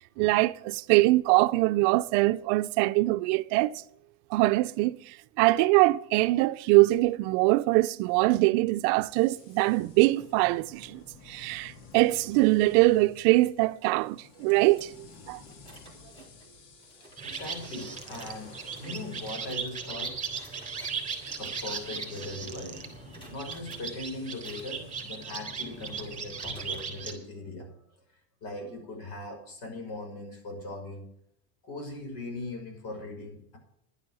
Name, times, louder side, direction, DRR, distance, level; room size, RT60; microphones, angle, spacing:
voice 1, 0.2-3.8 4.3-15.4, right 20 dB, 60° right, 0.6 m, -23 dB
sound 1, 9.1-26.2, left 4 dB, 80° left, 2.4 m, -53 dB
sound 2, 14.3-22.6 22.8-23.8 24.3-26.9, right 1 dB, 10° left, 4.1 m, -54 dB
voice 2, 17.2-20.2 21.3-22.8 23.3-27.8 28.4-31.1 31.6-33.6, left 2 dB, 55° left, 6.1 m, -39 dB
sound 3, 17.2-27.1, right 5 dB, 15° right, 3.7 m, -38 dB
11.5 x 10.0 x 6.2 m
supercardioid pair, 135°, 46 cm